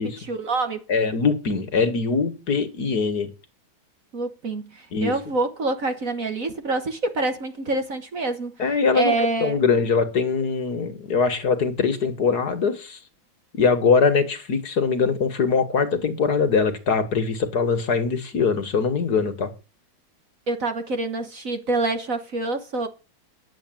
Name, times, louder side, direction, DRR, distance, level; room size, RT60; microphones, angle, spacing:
voice 1, 0.0-0.8 4.1-8.5 8.9-9.6 20.5-22.9, right 3 dB, 45° right, 1.5 m, -26 dB
voice 2, 0.9-3.3 4.9-5.1 8.6-13.0 13.5-19.5, left 5 dB, 50° left, 1.9 m, -22 dB
10.5 x 7.8 x 9.1 m
omnidirectional pair, 2.2 m